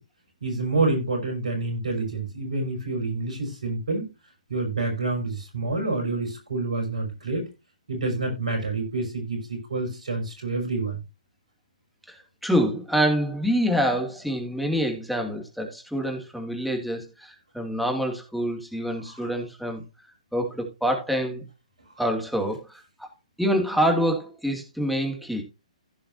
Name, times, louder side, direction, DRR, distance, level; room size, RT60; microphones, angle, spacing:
voice 1, 0.4-4.1 4.5-7.5 7.9-11.0 19.0-19.3, right 3 dB, 70° right, 5.8 m, -28 dB
voice 2, 12.1-19.8 20.3-21.4 22.0-23.1 23.4-25.4, equal, ahead, 2.4 m, -26 dB
15.5 x 5.7 x 2.7 m
figure-of-eight pair, 130°, 4 cm